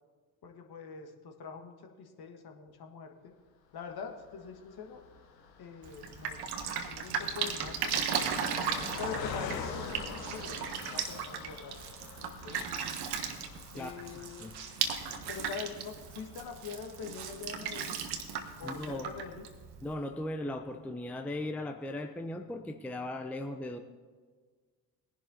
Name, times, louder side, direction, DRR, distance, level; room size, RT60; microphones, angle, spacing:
voice 1, 0.4-3.3 3.7-5.0 5.6-6.5 6.9-7.9 9.0-11.8 12.4-12.6 13.7-14.5 15.3-18.0 18.6-19.4, left 6 dB, 45° left, 4 dB, 1.7 m, -44 dB
Car passing by, 3.9-19.4 19.9-20.0 20.2-20.4, left 5 dB, 80° left, 1.1 m, -46 dB
Drip, 5.8-19.9, right 7 dB, 50° right, 1.3 m, -36 dB
voice 2, 13.7-14.5 18.6-19.1 19.8-23.8, left 1 dB, 5° left, 5 dB, 0.6 m, -38 dB
20.0 x 11.0 x 2.8 m, 1.5 s
figure-of-eight pair, 55°, 50 cm